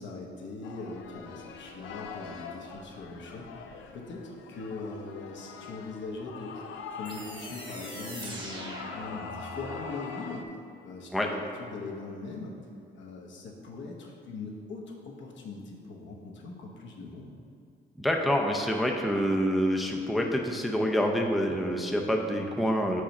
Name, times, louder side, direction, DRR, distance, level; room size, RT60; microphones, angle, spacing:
voice 1, 0.0-3.5 3.9-10.4 10.8-12.5 12.9-17.3, left 3 dB, 70° left, -1 dB, 1.1 m, -41 dB
sound 1, 0.6-10.4, left 5 dB, 90° left, 0.5 m, -44 dB
sound 2, 7.0-9.9, right 1 dB, 25° right, 1.1 m, -42 dB
voice 2, 18.0-23.0, equal, ahead, 1 dB, 0.5 m, -27 dB
4.9 x 4.1 x 5.8 m, 2.5 s
cardioid pair, 90°, 20 cm